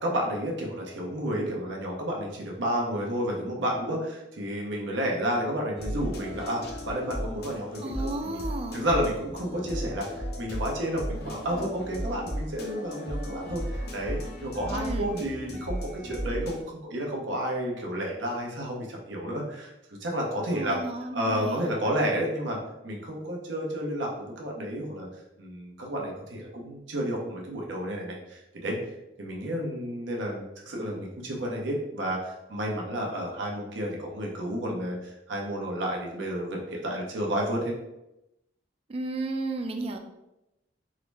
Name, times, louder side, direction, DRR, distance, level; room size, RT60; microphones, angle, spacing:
voice 1, 0.0-8.4 8.7-20.8 21.1-22.6 22.8-25.1 25.4-28.8 29.2-37.7, equal, 90° right, -1 dB, 0.8 m, -31 dB
sound 1, 5.7-16.6, equal, 60° left, 0.6 m, -35 dB
voice 2, 7.8-8.8 14.7-15.1 20.5-21.8 38.9-40.0, right 2 dB, 30° right, 5 dB, 0.3 m, -33 dB
3.7 x 2.0 x 3.3 m, 0.91 s
head